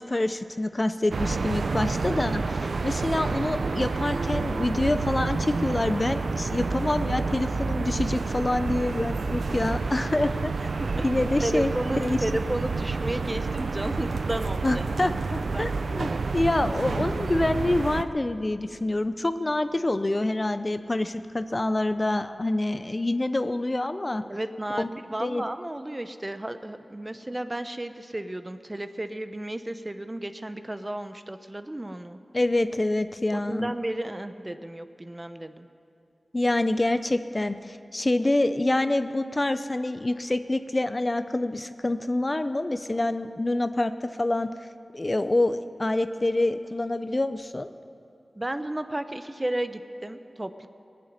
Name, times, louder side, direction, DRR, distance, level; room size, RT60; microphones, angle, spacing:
voice 1, 0.0-10.7 11.0-11.7 12.0-12.2 14.6-24.2 24.8-24.9 25.2-25.4 32.3-33.7 36.3-44.5 44.9-47.7, left 2 dB, 35° left, 11 dB, 0.6 m, -26 dB
sound 1, 1.1-18.0, right 4 dB, 85° right, 0.6 m, -29 dB
voice 2, 10.8-15.7 24.2-32.2 33.3-35.7 48.4-50.7, right 1 dB, 25° right, 10 dB, 0.8 m, -33 dB
18.5 x 7.8 x 9.6 m, 2.6 s
cardioid pair, 50°, 0 cm